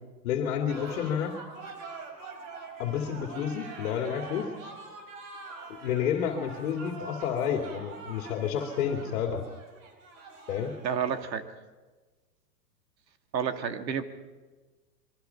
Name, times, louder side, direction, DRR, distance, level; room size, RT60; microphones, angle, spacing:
voice 1, 0.2-1.4 2.8-4.5 5.8-9.4 10.5-10.7, left 8 dB, 55° left, 4 dB, 2.6 m, -30 dB
sound 1, 0.7-11.3, right 3 dB, 50° right, 5.6 m, -44 dB
voice 2, 10.8-11.5 13.3-14.0, right 7 dB, 90° right, 8 dB, 2.3 m, -30 dB
24.5 x 23.0 x 5.8 m, 1.3 s
hypercardioid pair, 140°, 49 cm